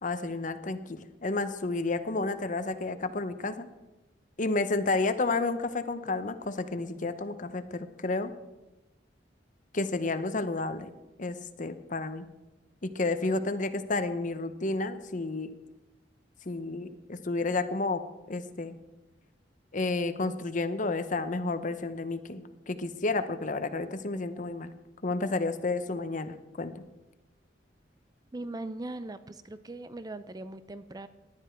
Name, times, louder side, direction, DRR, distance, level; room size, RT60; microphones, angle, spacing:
voice 1, 0.0-3.7 4.4-8.3 9.7-10.9 11.2-12.2 12.8-15.5 16.5-18.0 18.3-18.8 19.7-24.7 25.0-26.8, left 3 dB, 45° left, 11 dB, 0.9 m, -31 dB
voice 2, 28.3-31.1, right 2 dB, 20° right, 13 dB, 0.5 m, -40 dB
18.0 x 11.5 x 4.5 m, 1.0 s
head